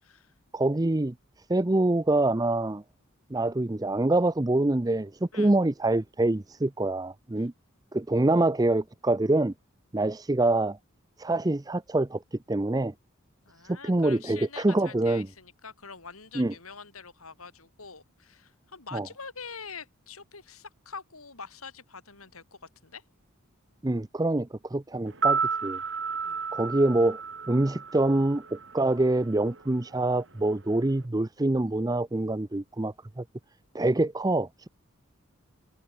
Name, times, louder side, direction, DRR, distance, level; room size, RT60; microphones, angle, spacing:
voice 1, 0.0-0.3 5.3-5.5 13.4-23.0 26.2-26.4, left 5 dB, 85° left, 6.6 m, -45 dB
voice 2, 0.5-1.1 1.5-2.8 3.3-7.5 7.9-9.5 9.9-10.8 11.2-12.9 13.7-15.3 16.3-16.5 18.9-19.1 23.8-25.8 26.5-27.2 27.5-33.2 33.7-34.7, right 2 dB, 15° right, 0.5 m, -25 dB
sound 1, 25.1-29.2 29.5-29.6, right 5 dB, 55° right, 4.5 m, -31 dB
head